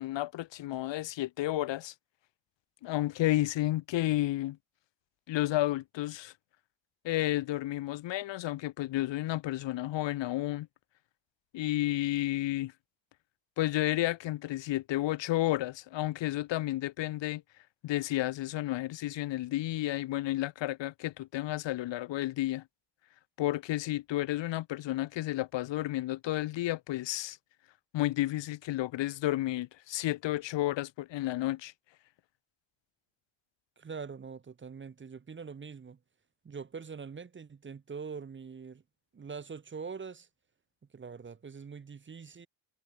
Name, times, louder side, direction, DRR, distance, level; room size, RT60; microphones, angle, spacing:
voice 1, 0.0-1.9 2.8-4.6 5.3-6.3 7.0-10.7 11.5-12.7 13.6-17.4 17.8-22.6 23.4-27.4 27.9-31.7, left 15 dB, 65° left, 0.7 m, -31 dB
voice 2, 33.8-36.0 36.4-38.8 39.1-40.3 40.9-42.5, right 5 dB, 25° right, 0.9 m, -43 dB
cardioid pair, 120°, 48 cm